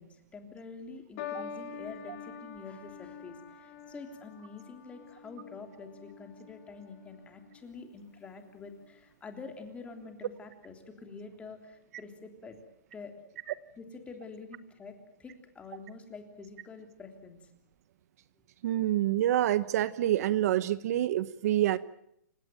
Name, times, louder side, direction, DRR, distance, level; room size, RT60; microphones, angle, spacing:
voice 1, 0.0-12.6 12.9-13.1 13.8-17.4, left 4 dB, 10° left, 5 dB, 3.3 m, -47 dB
sound 1, 1.2-7.7 8.5-8.9, left 7 dB, 40° left, 3.6 m, -46 dB
voice 2, 18.6-21.8, right 13 dB, 55° right, 16 dB, 1.0 m, -27 dB
29.0 x 17.0 x 9.0 m, 0.73 s
hypercardioid pair, 155°, 10 cm